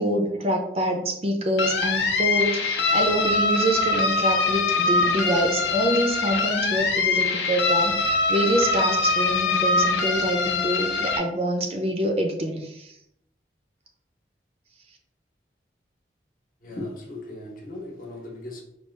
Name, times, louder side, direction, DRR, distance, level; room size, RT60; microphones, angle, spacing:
voice 1, 0.0-12.9, right 1 dB, 35° right, 3 dB, 0.5 m, -26 dB
sound 1, 1.6-11.2, left 3 dB, 80° left, 0.6 m, -23 dB
voice 2, 16.6-18.6, left 1 dB, 45° left, 0 dB, 0.9 m, -37 dB
4.6 x 2.3 x 3.2 m, 0.78 s
head